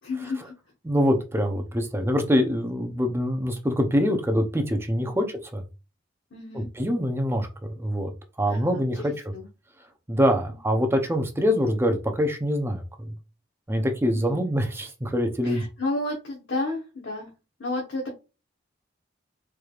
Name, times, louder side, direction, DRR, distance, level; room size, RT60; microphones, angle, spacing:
voice 1, 0.0-0.5 5.0-5.3 6.3-6.7 8.5-8.8 9.3-9.5 14.1-14.5 15.4-17.3 17.6-18.1, left 2 dB, 75° left, 1.1 m, -32 dB
voice 2, 0.8-5.3 5.5-5.6 6.5-8.1 8.4-9.1 10.1-12.8 13.7-15.6, equal, 15° right, 0.7 m, -24 dB
4.6 x 3.3 x 2.4 m
head